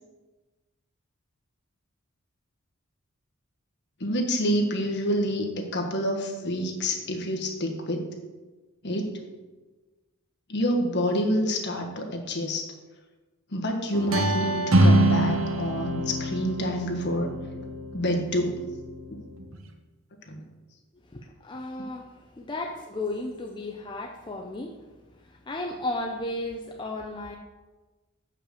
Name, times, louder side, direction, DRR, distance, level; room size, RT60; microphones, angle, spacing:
voice 1, 4.0-8.1 8.8-9.2 10.5-12.7 13.5-17.3 17.9-18.6 20.3-20.4, equal, 50° left, 2 dB, 1.3 m, -27 dB
sound 1, 13.9-19.6, right 1 dB, 65° right, 0.8 m, -25 dB
voice 2, 21.1-24.8 25.2-27.4, left 2 dB, 20° left, 1 dB, 0.5 m, -34 dB
6.6 x 5.8 x 6.9 m, 1.2 s
head